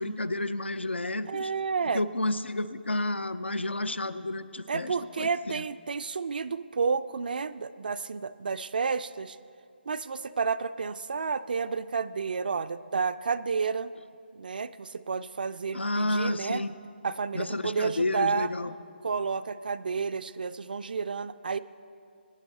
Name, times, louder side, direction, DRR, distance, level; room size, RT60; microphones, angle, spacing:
voice 1, 0.0-1.5 1.8-5.6 15.7-16.8 17.3-18.7, left 2 dB, 75° left, 14 dB, 0.6 m, -31 dB
voice 2, 1.3-2.0 4.7-9.4 9.9-13.9 14.3-16.6 17.0-18.5 19.0-21.6, right 5 dB, 50° right, 12 dB, 0.4 m, -31 dB
21.5 x 9.7 x 3.2 m, 2.5 s
figure-of-eight pair, 145°, 6 cm